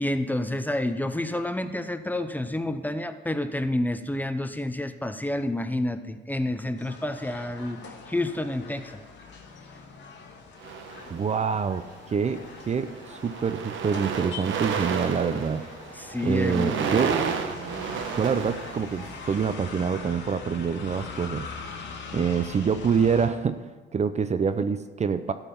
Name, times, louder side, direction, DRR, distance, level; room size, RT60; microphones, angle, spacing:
voice 1, 0.0-9.0 16.0-17.0, left 1 dB, 10° left, 10 dB, 0.7 m, -29 dB
sound 1, 6.8-23.3, left 5 dB, 65° left, 1.8 m, -42 dB
sound 2, 10.6-11.6 12.4-12.6 12.9-19.3, right 6 dB, 75° right, 1.2 m, -32 dB
voice 2, 11.1-15.6 16.2-17.3 17.9-21.5 22.1-23.6 23.9-25.3, right 6 dB, 35° right, 11 dB, 0.5 m, -26 dB
12.5 x 5.7 x 7.1 m, 1.3 s
cardioid pair, 90°, 20 cm